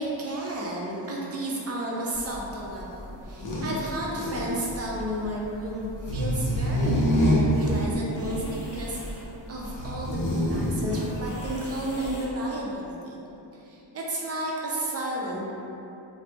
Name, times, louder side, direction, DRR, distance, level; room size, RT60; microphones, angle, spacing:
voice 1, 0.0-9.2 9.5-13.2 13.5-15.5, right 1 dB, 30° right, -3 dB, 0.5 m, -32 dB
sound 1, 2.1-12.3, equal, 40° left, 0.7 m, -28 dB
3.2 x 2.1 x 2.9 m, 2.9 s
cardioid pair, 90°, 47 cm